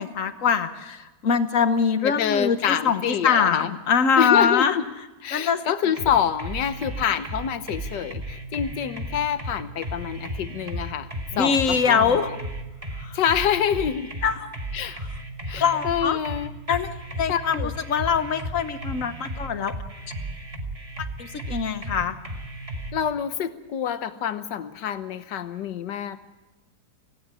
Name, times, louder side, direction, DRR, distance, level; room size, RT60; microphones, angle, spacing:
voice 1, 0.0-2.6 2.8-4.8 5.3-5.6 11.3-12.3 13.0-13.2 14.2-14.5 15.6-16.2 16.7-19.7 21.2-22.2, left 6 dB, 50° left, 11 dB, 1.4 m, -23 dB
voice 2, 2.0-3.7 4.2-4.9 5.2-11.1 11.4-12.4 13.1-14.1 14.7-15.0 15.5-16.6 17.3-17.7 22.9-26.2, left 9 dB, 80° left, 12 dB, 1.6 m, -26 dB
sound 1, 6.0-22.9, right 1 dB, 20° right, 1.8 m, -34 dB
18.0 x 16.0 x 9.6 m, 1.1 s
omnidirectional pair, 1.9 m